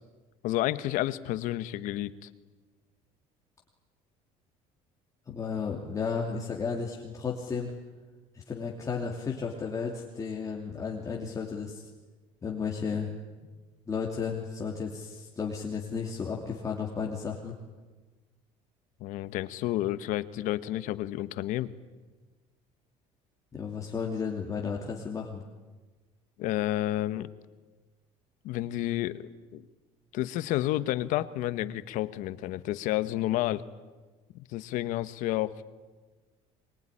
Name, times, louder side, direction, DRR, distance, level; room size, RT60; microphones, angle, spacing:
voice 1, 0.4-2.3 19.0-21.7 26.4-27.3 28.4-29.6 30.1-33.6 34.3-35.6, left 15 dB, 70° left, 13 dB, 1.3 m, -30 dB
voice 2, 5.3-7.7 8.3-11.9 12.4-13.1 13.9-17.5 23.5-25.4, left 5 dB, 25° left, -1 dB, 2.9 m, -33 dB
24.0 x 22.5 x 10.0 m, 1.3 s
cardioid pair, 130°, 14 cm